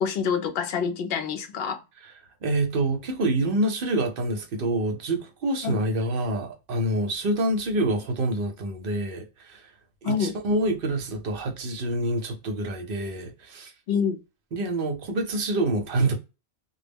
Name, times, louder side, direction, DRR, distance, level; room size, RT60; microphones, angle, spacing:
voice 1, 0.0-1.8 5.6-5.8 10.0-10.3 13.9-14.2, left 6 dB, 65° left, 0.7 m, -26 dB
voice 2, 2.4-9.7 10.0-13.7 14.5-16.1, right 1 dB, 60° right, 0.8 m, -27 dB
2.2 x 2.0 x 3.3 m
omnidirectional pair, 1.1 m